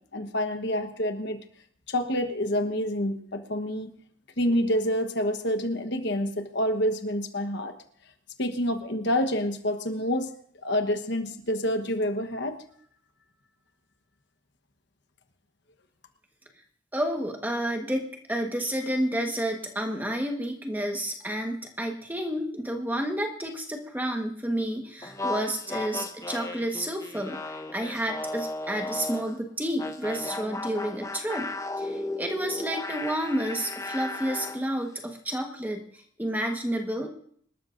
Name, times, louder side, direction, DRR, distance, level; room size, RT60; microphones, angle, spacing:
voice 1, 0.1-1.4 1.9-3.9 4.4-7.7 8.4-10.3 10.6-12.6, equal, 55° left, 7 dB, 1.1 m, -27 dB
voice 2, 16.9-31.5 31.8-37.1, right 1 dB, 10° right, 3 dB, 1.3 m, -30 dB
sound 1, 25.0-29.4 29.8-34.6, left 2 dB, 15° left, 0.7 m, -35 dB
26.0 x 13.0 x 2.6 m, 0.62 s
head